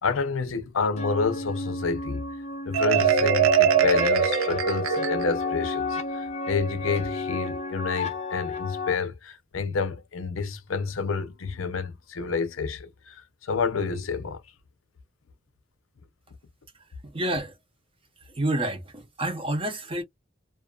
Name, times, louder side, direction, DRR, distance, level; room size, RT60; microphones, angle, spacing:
voice 1, 0.0-2.2 2.7-14.4, left 4 dB, 75° left, 0.6 m, -29 dB
sound 1, 1.0-8.9, left 3 dB, 30° left, 0.5 m, -32 dB
Marimba xylophone, 2.7-5.5, right 7 dB, 85° right, 0.4 m, -22 dB
voice 2, 17.0-17.6 18.2-20.0, right 1 dB, 25° right, 0.8 m, -29 dB
2.4 x 2.4 x 2.3 m
head